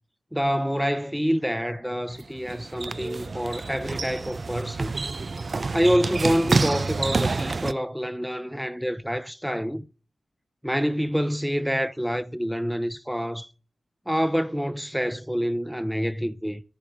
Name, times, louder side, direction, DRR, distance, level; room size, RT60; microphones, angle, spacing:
voice 1, 0.3-4.9 5.7-9.9 10.6-13.5 14.1-16.6, equal, ahead, 0.9 m, -27 dB
sound 1, 2.1-7.7, right 3 dB, 55° right, 0.5 m, -28 dB
13.5 x 4.8 x 8.7 m
wide cardioid pair, 65°, 0 cm